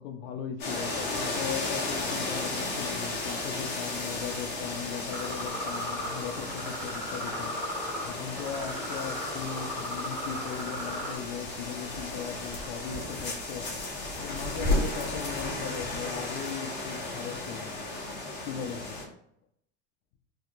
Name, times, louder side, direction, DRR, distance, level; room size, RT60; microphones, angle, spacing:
voice 1, 0.0-13.7 14.2-17.9 18.4-19.0, left 8 dB, 60° left, 5 dB, 0.5 m, -38 dB
sound 1, 0.6-19.0, left 2 dB, 30° left, 1.1 m, -34 dB
sound 2, 5.1-11.2, equal, 5° right, 1.3 m, -37 dB
3.5 x 2.9 x 2.4 m, 0.71 s
supercardioid pair, 155°, 32 cm